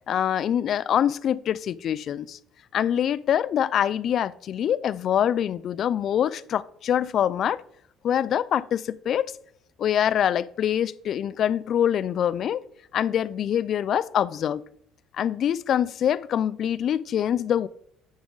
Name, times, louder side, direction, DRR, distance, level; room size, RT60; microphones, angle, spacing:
voice 1, 0.1-2.4 2.7-7.6 8.0-9.3 9.8-12.6 12.9-14.6 15.1-17.7, left 9 dB, 45° left, 0.3 m, -24 dB
9.5 x 6.0 x 3.9 m
cardioid pair, 140°, 0 cm